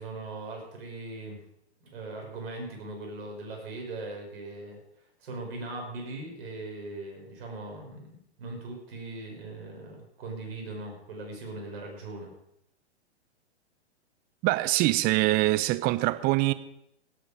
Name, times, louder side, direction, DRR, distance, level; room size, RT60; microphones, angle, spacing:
voice 1, 0.0-1.4 1.9-4.8 5.2-12.3, right 2 dB, 60° right, 1 dB, 5.5 m, -39 dB
voice 2, 14.4-16.5, right 19 dB, 25° right, 15 dB, 0.7 m, -24 dB
17.0 x 8.5 x 5.0 m, 0.74 s
hypercardioid pair, 115°, 33 cm